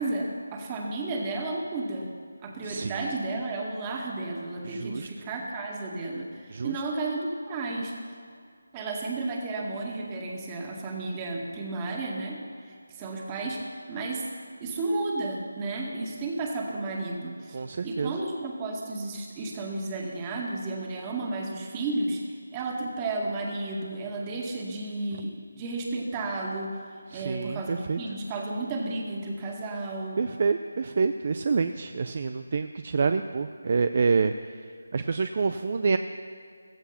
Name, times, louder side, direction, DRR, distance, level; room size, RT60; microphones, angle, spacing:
voice 1, 0.0-2.1 2.4-7.9 8.7-13.6 13.9-14.3 14.6-17.6 17.8-26.8 27.1-30.2, right 2 dB, 20° right, 0 dB, 2.0 m, -32 dB
voice 2, 2.6-3.0 4.6-5.1 6.5-6.7 17.5-18.2 27.1-28.0 30.2-34.3 34.9-36.0, right 4 dB, 45° right, 9 dB, 0.5 m, -27 dB
16.0 x 14.5 x 5.8 m, 2.2 s
figure-of-eight pair, 160°, 0 cm